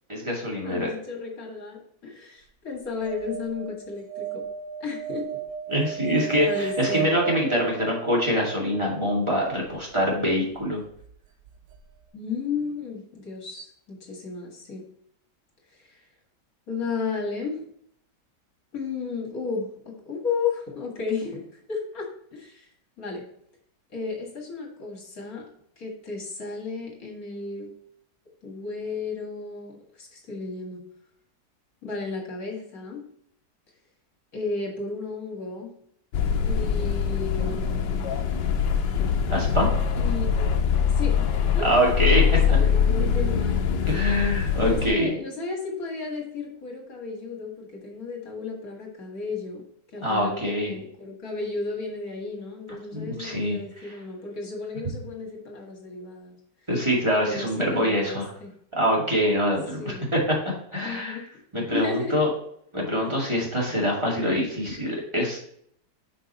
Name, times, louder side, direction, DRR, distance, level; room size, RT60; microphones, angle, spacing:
voice 1, 0.1-0.9 5.7-10.8 37.4-37.8 39.3-39.7 41.6-42.2 42.5-42.6 43.9-45.1 50.0-50.7 52.9-53.6 56.7-58.3 58.7-60.2 60.7-61.2 61.5-62.3 62.7-65.5, equal, 15° right, -3 dB, 2.2 m, -24 dB
voice 2, 0.6-4.4 4.8-5.3 6.4-7.1 12.1-14.8 15.8-16.0 16.7-17.7 18.7-22.7 23.0-23.2 23.9-25.4 25.8-27.7 28.4-30.8 31.8-33.0 34.3-35.7 36.4-37.9 39.9-40.6 41.0-41.9 42.5-43.6 43.9-44.2 44.7-49.6 49.9-56.4 57.2-58.5 59.8-60.1 60.8-61.3 61.7-62.2, left 4 dB, 55° left, 0 dB, 2.2 m, -33 dB
sound 1, 3.0-9.2 11.5-11.6 11.7-11.8, right 8 dB, 85° right, 1.4 m, -34 dB
sound 2, 36.1-44.9, left 7 dB, 85° left, 1.4 m, -23 dB
6.1 x 5.4 x 4.2 m, 0.67 s
omnidirectional pair, 1.9 m